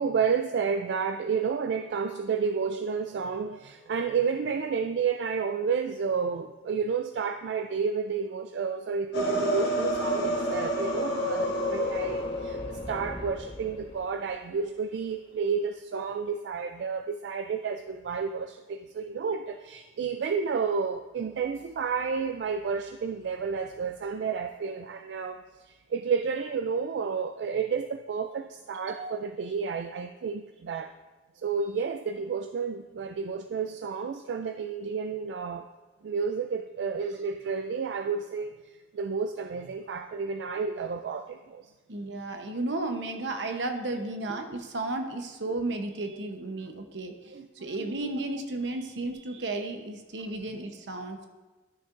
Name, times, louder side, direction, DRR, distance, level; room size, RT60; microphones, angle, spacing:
voice 1, 0.0-30.9 31.4-35.7 36.0-38.5 38.9-41.6 47.3-48.1 49.3-49.5, right 5 dB, 70° right, 7 dB, 0.3 m, -31 dB
sound 1, 9.1-14.0, equal, 70° left, 1.5 m, -30 dB
voice 2, 41.9-51.3, right 2 dB, 90° right, 5 dB, 0.9 m, -33 dB
11.5 x 6.6 x 2.5 m, 1.2 s
head